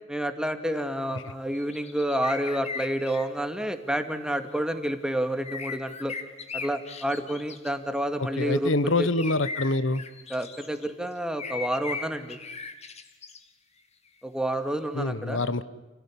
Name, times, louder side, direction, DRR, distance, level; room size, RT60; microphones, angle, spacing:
voice 1, 0.1-6.1 6.5-9.1 10.3-12.4 14.2-15.4, right 1 dB, 5° right, 7 dB, 2.2 m, -29 dB
sound 1, 1.6-3.3 5.4-7.7 9.1-10.9 11.4-13.4, left 5 dB, 35° left, 2.2 m, -38 dB
voice 2, 8.2-10.0 14.9-15.6, left 2 dB, 90° left, 14 dB, 1.3 m, -26 dB
30.0 x 17.5 x 10.0 m, 1.1 s
head